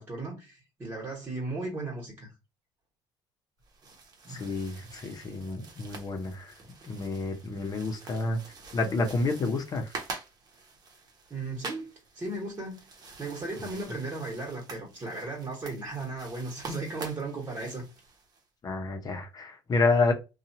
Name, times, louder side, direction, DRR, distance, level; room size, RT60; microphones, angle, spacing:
voice 1, 0.0-2.3 4.2-4.5 11.3-11.9 12.1-12.9 13.2-17.8, right 2 dB, 25° right, 1.4 m, -36 dB
sound 1, 3.6-18.4, right 3 dB, 45° right, 1.0 m, -46 dB
voice 2, 4.3-6.5 6.8-8.4 8.7-9.9 18.6-20.1, left 3 dB, 40° left, 0.9 m, -29 dB
2.7 x 2.4 x 2.8 m
supercardioid pair, 85°, 10 cm